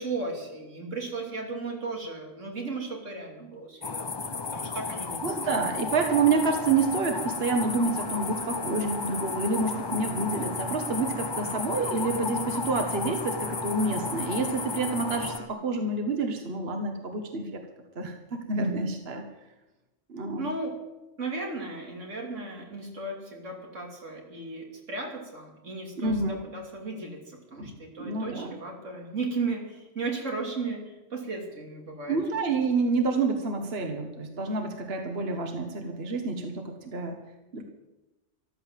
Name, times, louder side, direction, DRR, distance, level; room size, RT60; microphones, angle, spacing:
voice 1, 0.0-5.6 20.4-20.7 21.2-32.2, right 3 dB, 90° right, 1 dB, 3.3 m, -35 dB
sound 1, 3.8-15.4, left 4 dB, 30° left, 0.5 m, -34 dB
voice 2, 5.2-17.6 17.9-19.3 20.1-20.5 26.0-26.4 27.6-27.7 28.0-28.5 32.1-37.2 37.5-37.6, right 3 dB, 55° right, 5 dB, 1.6 m, -28 dB
sound 2, 6.0-15.5, equal, 30° right, 1.6 m, -42 dB
14.0 x 13.0 x 7.5 m, 1.0 s
omnidirectional pair, 1.2 m